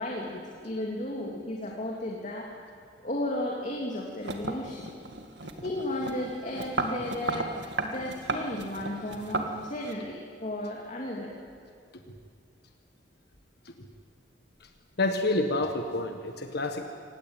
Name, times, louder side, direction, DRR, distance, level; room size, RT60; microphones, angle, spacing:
voice 1, 0.0-2.5 3.0-4.9 5.6-7.5 7.8-11.3, left 1 dB, 40° left, -1 dB, 2.7 m, -34 dB
sound 1, 4.2-9.9, right 2 dB, 70° right, 2.0 m, -34 dB
voice 2, 15.0-16.8, left 2 dB, 60° left, 5 dB, 1.6 m, -28 dB
25.5 x 18.0 x 9.1 m, 2.4 s
head